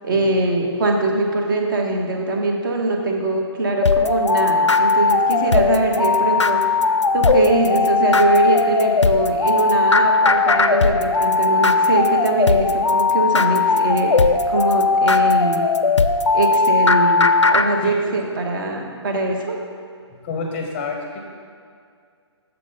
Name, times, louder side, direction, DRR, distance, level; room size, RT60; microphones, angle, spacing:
voice 1, 0.0-6.6 7.1-15.6 16.3-19.6, right 2 dB, 45° right, 2 dB, 1.0 m, -22 dB
sound 1, 3.8-17.7, left 4 dB, 85° left, 0.4 m, -18 dB
voice 2, 20.2-21.2, left 4 dB, 25° left, 2 dB, 0.6 m, -29 dB
6.9 x 5.0 x 5.4 m, 2.2 s
figure-of-eight pair, 135°, 15 cm